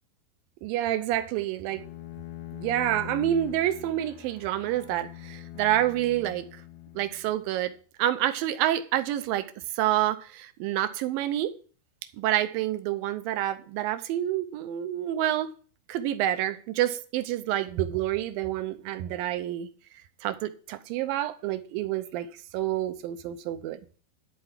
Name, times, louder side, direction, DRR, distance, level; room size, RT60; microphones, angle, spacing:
voice 1, 0.6-1.8 2.5-6.5 7.0-9.5 9.7-11.5 12.2-15.5 15.9-19.7 20.2-22.3 22.5-23.8, right 12 dB, 80° right, 2.3 m, -28 dB
Bowed string instrument, 1.7-7.5, left 12 dB, 75° left, 1.8 m, -43 dB
12.0 x 4.5 x 7.4 m
omnidirectional pair, 4.6 m